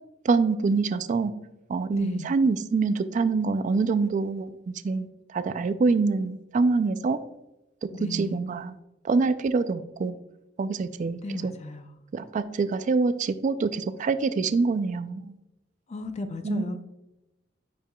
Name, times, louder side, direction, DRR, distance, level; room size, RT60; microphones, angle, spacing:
voice 1, 0.3-1.3 1.7-4.5 4.8-5.1 5.3-7.2 7.8-8.7 9.1-10.2 10.6-11.5 12.1-15.3 16.4-16.7, right 4 dB, 40° right, 12 dB, 0.3 m, -25 dB
voice 2, 1.9-2.4 7.9-8.4 11.2-11.9 15.9-16.8, left 2 dB, 35° left, 8 dB, 0.5 m, -35 dB
9.8 x 4.7 x 2.2 m, 0.93 s
head